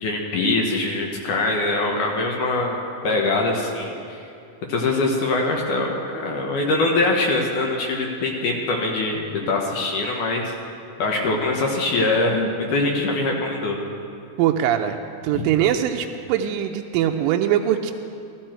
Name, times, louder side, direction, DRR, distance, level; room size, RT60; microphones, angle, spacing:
voice 1, 0.0-4.2 4.7-10.4 11.0-13.8 15.3-15.5, left 2 dB, 70° left, 0 dB, 2.6 m, -23 dB
voice 2, 14.4-15.0 15.2-17.9, right 10 dB, 85° right, 4 dB, 2.3 m, -21 dB
14.5 x 14.0 x 4.5 m, 2.6 s
omnidirectional pair, 3.9 m